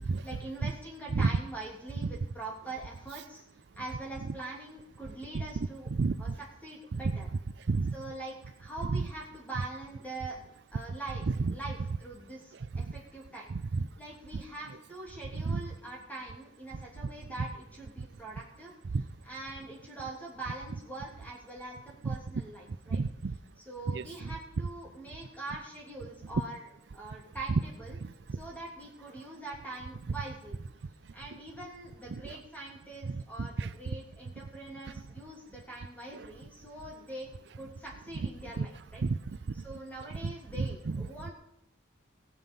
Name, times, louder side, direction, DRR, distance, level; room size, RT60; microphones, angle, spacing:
voice 1, 0.2-3.4 3.8-5.9 6.2-6.3 6.6-7.3 7.9-8.3 8.6-13.5 14.0-18.7 19.2-23.0 23.7-26.6 26.9-28.0 28.4-30.6 31.1-37.3 37.5-39.0 39.6-41.3, right 2 dB, 10° left, 2.8 m, -43 dB
voice 2, 5.3-6.1 6.9-7.4 7.7-7.9 8.9-9.1 11.2-11.6 12.7-12.8 13.5-13.9 14.3-14.4 15.4-15.7 18.9-19.0 22.0-22.2 22.9-23.3 23.9-24.3 28.0-28.1 32.1-32.4 33.1-33.7 36.1-36.3 38.1-38.3 38.6-38.7 39.0-39.4 40.2-41.3, right 4 dB, 60° right, 0.4 m, -31 dB
15.5 x 9.4 x 5.3 m
head